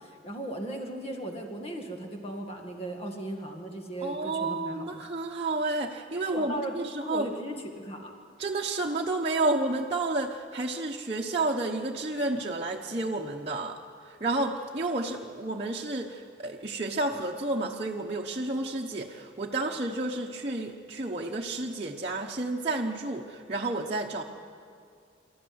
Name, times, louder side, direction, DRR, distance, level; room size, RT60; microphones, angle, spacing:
voice 1, 0.0-5.0 6.3-8.1, right 1 dB, 35° left, 3 dB, 1.8 m, -37 dB
voice 2, 4.0-7.3 8.4-13.8 14.0-24.2, right 2 dB, 35° right, -2 dB, 1.0 m, -31 dB
26.0 x 13.5 x 9.5 m, 2.4 s
head